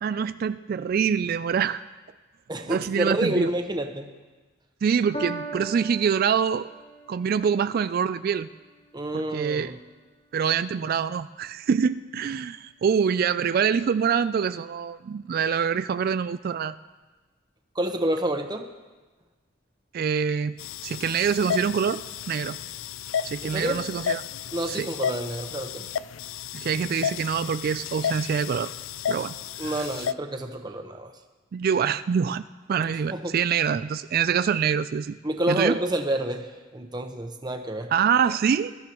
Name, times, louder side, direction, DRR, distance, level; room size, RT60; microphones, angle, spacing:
voice 1, 0.0-1.8 2.7-3.5 4.8-6.7 7.1-8.5 9.1-9.7 10.3-16.8 19.9-20.6 20.8-22.0 22.3-22.6 23.2-24.2 24.7-24.9 26.5-28.7 29.1-29.3 29.6-29.7 31.5-32.4 32.7-35.2 35.5-35.8 37.9-38.7, right 7 dB, 50° right, 13 dB, 0.3 m, -25 dB
voice 2, 2.5-4.1 8.9-9.8 17.7-18.7 23.4-23.8 24.5-25.9 29.6-31.1 33.1-33.4 35.2-37.9, right 1 dB, 20° right, 5 dB, 1.0 m, -28 dB
Piano, 5.1-11.7 12.5-12.6, right 1 dB, 40° left, 2.7 m, -42 dB
sound 1, 20.6-30.1, left 8 dB, 85° left, 0.4 m, -33 dB
22.0 x 13.5 x 3.0 m, 1.3 s
head